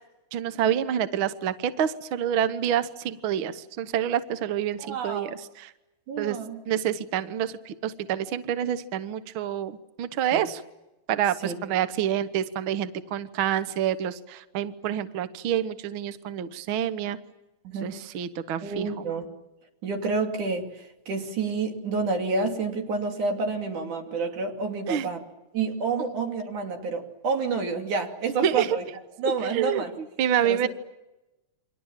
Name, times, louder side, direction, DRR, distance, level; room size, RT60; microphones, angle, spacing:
voice 1, 0.3-5.7 6.2-6.4 6.7-10.6 11.1-17.2 17.8-18.9 24.9-25.1 28.4-28.8 29.4-29.8 30.2-30.7, right 10 dB, 55° right, 11 dB, 1.5 m, -27 dB
voice 2, 4.8-5.4 6.1-6.6 10.3-10.4 11.4-11.5 17.6-18.0 18.6-19.3 19.8-25.2 25.5-28.8 29.2-29.9 30.4-30.7, right 4 dB, 85° right, 3 dB, 4.4 m, -29 dB
29.0 x 25.0 x 7.4 m, 0.99 s
omnidirectional pair, 3.4 m